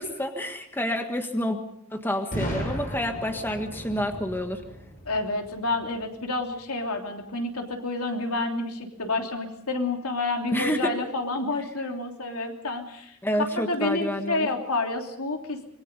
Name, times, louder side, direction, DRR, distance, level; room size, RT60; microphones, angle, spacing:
voice 1, 0.0-1.6 1.9-4.6 10.5-10.9 13.2-14.5, equal, 10° left, 5 dB, 1.5 m, -28 dB
Boom, 2.3-6.1, equal, 40° left, 7.2 m, -35 dB
voice 2, 5.0-15.6, left 2 dB, 80° left, 3 dB, 3.1 m, -29 dB
26.0 x 22.0 x 5.4 m, 0.70 s
head